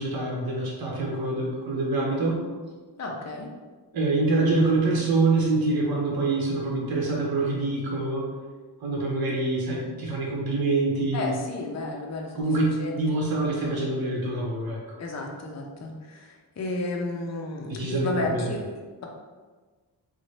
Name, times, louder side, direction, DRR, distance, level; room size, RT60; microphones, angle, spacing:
voice 1, 0.0-2.4 3.9-8.3 8.8-11.3 12.4-15.0 17.7-18.5, right 2 dB, 55° right, -3 dB, 0.9 m, -25 dB
voice 2, 3.0-3.5 11.1-13.2 15.0-19.1, left 2 dB, 35° left, 0 dB, 0.6 m, -33 dB
3.8 x 2.1 x 3.2 m, 1.4 s
cardioid pair, 60°, 44 cm